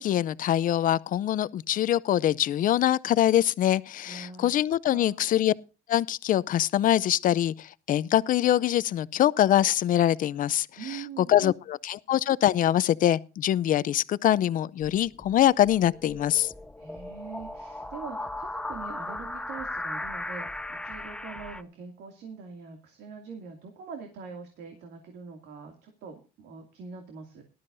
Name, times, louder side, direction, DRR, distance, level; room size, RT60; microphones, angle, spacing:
voice 1, 0.0-5.5 5.9-16.5, left 12 dB, 55° left, 0.6 m, -24 dB
voice 2, 4.0-4.5 4.9-5.3 10.8-11.6 16.8-27.4, right 5 dB, 80° right, 2.5 m, -43 dB
sound 1, 15.0-21.6, left 1 dB, 5° left, 0.6 m, -37 dB
18.5 x 12.5 x 2.6 m
cardioid pair, 110°, 17 cm